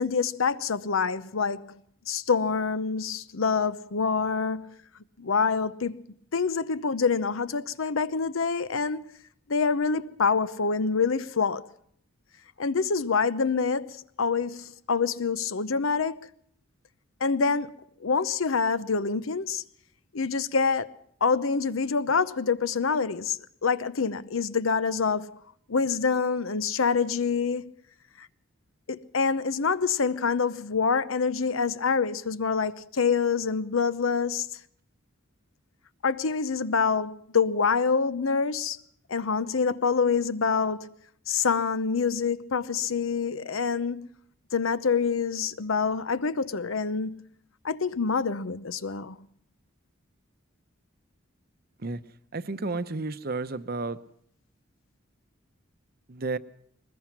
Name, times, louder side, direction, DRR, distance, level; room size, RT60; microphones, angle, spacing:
voice 1, 0.0-1.7 2.1-4.7 5.2-6.0 6.3-9.1 9.5-11.7 12.6-16.3 17.2-17.7 18.0-19.6 20.1-20.9 21.2-25.4 25.7-27.7 28.2-28.3 28.9-34.5 36.0-38.8 39.1-40.9 41.3-44.1 44.5-47.2 47.6-49.1, left 5 dB, 85° left, 0.8 m, -26 dB
voice 2, 52.3-54.0 56.1-56.4, right 3 dB, 50° right, 0.8 m, -31 dB
21.5 x 20.0 x 6.0 m
head